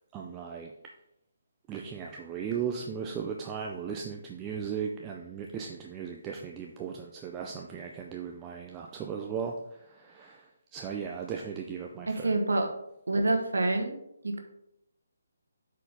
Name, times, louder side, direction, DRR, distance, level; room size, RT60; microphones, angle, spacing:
voice 1, 0.1-0.7 1.7-9.5 9.9-12.3, right 7 dB, 15° right, 1 dB, 0.4 m, -37 dB
voice 2, 12.1-12.7 13.1-13.9 14.2-14.4, right 2 dB, 85° right, 4 dB, 1.2 m, -27 dB
7.8 x 4.7 x 3.6 m, 0.80 s
hypercardioid pair, 160°, 0 cm